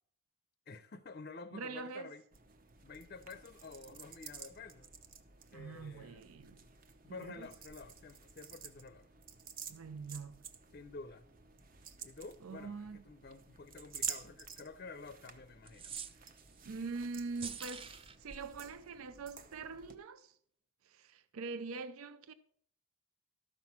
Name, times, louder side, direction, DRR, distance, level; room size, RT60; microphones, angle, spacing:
voice 1, 0.7-2.2 2.8-4.9 5.5-6.2 7.0-9.1 10.7-11.2 12.0-15.9, left 4 dB, 45° left, 0.5 m, -50 dB
voice 2, 1.5-2.1 5.5-6.6 7.1-7.5 9.7-10.4 12.4-13.0 16.6-17.9 18.2-20.4 20.8-22.3, right 4 dB, 90° right, 0.5 m, -43 dB
sound 1, 2.3-20.0, right 7 dB, 40° right, 0.8 m, -50 dB
sound 2, 15.7-16.6 17.4-18.2, right 7 dB, 25° right, 0.4 m, -45 dB
13.0 x 6.0 x 5.8 m
head